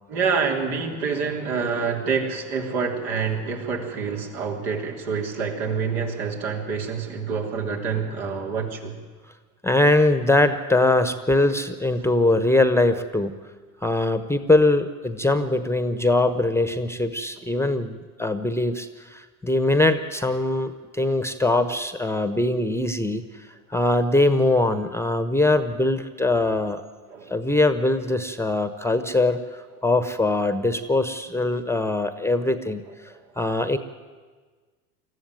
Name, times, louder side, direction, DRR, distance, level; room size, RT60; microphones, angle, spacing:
voice 1, 0.1-9.0 15.4-15.5 21.0-21.1 22.1-22.2 27.1-27.4 33.0-33.2, right 5 dB, 75° right, 1 dB, 3.6 m, -27 dB
voice 2, 9.6-13.3 13.8-23.2 23.7-26.8 27.3-32.8 33.4-33.8, left 2 dB, 5° left, 11 dB, 1.0 m, -22 dB
21.0 x 14.0 x 9.2 m, 1.4 s
hypercardioid pair, 85°, 46 cm